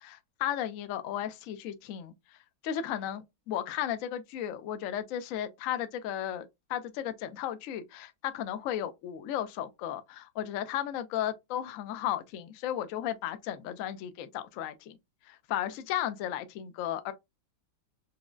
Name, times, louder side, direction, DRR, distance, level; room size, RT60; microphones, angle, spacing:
voice 1, 0.0-2.1 2.6-15.0 15.3-17.1, left 11 dB, 75° left, 0.7 m, -34 dB
4.5 x 2.0 x 2.3 m
omnidirectional pair, 1.9 m